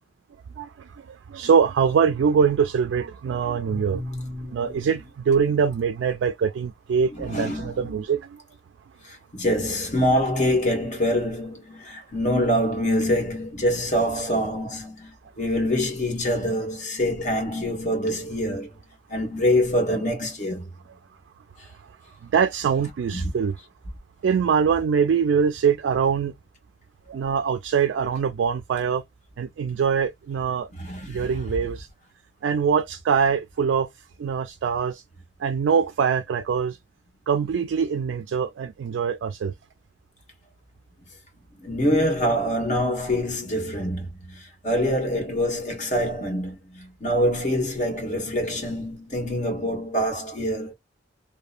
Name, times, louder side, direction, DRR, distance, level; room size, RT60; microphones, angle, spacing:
voice 1, 0.6-4.0 4.5-8.4 22.3-23.6 24.2-26.3 27.1-29.0 29.4-30.7 31.1-31.9 32.4-33.9 34.2-35.0 35.4-36.8 37.3-39.5, right 6 dB, 80° right, 0.3 m, -23 dB
voice 2, 3.7-4.9 7.1-8.0 9.0-18.7 19.1-20.7 23.1-23.3 30.7-31.4 41.6-50.7, equal, 45° left, 1.3 m, -25 dB
2.9 x 2.1 x 2.4 m
head